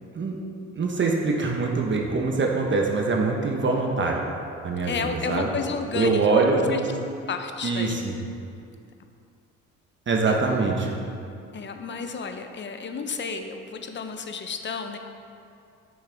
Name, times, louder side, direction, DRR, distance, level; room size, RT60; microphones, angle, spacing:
voice 1, 0.8-4.2 4.6-5.5 5.9-6.9 7.6-8.1 10.1-11.0, right 3 dB, 40° right, 0 dB, 1.0 m, -24 dB
voice 2, 4.8-6.8 7.3-8.1 10.3-10.4 11.5-15.0, left 5 dB, 40° left, 6 dB, 0.7 m, -32 dB
8.8 x 6.5 x 3.5 m, 2.5 s
cardioid pair, 90°, 30 cm